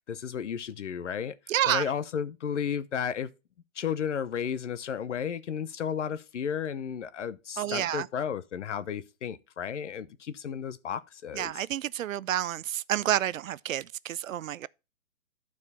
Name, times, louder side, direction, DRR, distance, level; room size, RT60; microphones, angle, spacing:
voice 1, 0.1-1.4 1.6-3.3 3.8-11.6, left 7 dB, 60° left, 0.8 m, -33 dB
voice 2, 1.5-1.8 7.6-8.1 11.3-14.7, right 11 dB, 75° right, 0.5 m, -29 dB
12.0 x 4.6 x 4.2 m
hypercardioid pair, 160°, 40 cm